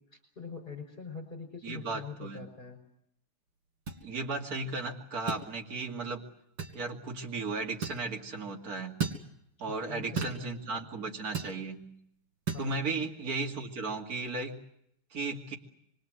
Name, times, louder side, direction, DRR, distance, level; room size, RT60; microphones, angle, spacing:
voice 1, 0.0-2.8 9.6-10.9 12.5-12.8, left 5 dB, 20° left, 2 dB, 5.8 m, -44 dB
voice 2, 1.6-2.5 4.0-6.2 6.7-9.0 9.6-11.8 12.6-14.6 15.1-15.6, right 3 dB, 40° right, 0 dB, 2.8 m, -35 dB
sound 1, 3.9-4.0 5.3-5.5 6.6-6.8 7.8-8.0 9.0-9.2 10.2-10.4 11.3-11.6 12.5-12.7, right 6 dB, 90° right, 3.9 m, -33 dB
26.0 x 23.0 x 7.9 m, 0.72 s
omnidirectional pair, 2.4 m